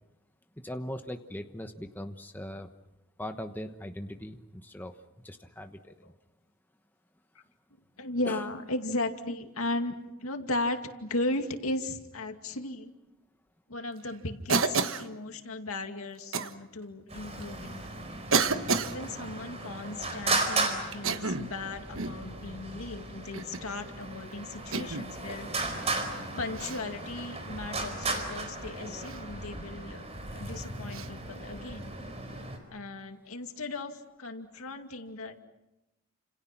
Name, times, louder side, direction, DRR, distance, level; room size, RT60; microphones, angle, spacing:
voice 1, 0.6-2.7 3.2-6.1 8.3-8.4, equal, 10° left, 6 dB, 1.1 m, -40 dB
voice 2, 8.0-9.9 10.2-12.9 13.7-17.8 18.4-25.5 26.4-30.0 30.3-31.9 32.7-35.4, left 2 dB, 85° left, 5 dB, 2.4 m, -36 dB
Cough, 14.5-15.1 16.3-16.5 17.4-17.5 18.3-19.0 20.9-21.5 22.0-22.2 23.3-23.7 24.7-25.1 26.5-26.8 29.0-29.2 30.9-31.1, right 4 dB, 70° right, 1.4 m, -29 dB
Traffic noise roadway noise, 17.1-32.6, right 2 dB, 30° right, 4.5 m, -36 dB
30.0 x 28.0 x 6.0 m, 0.93 s
head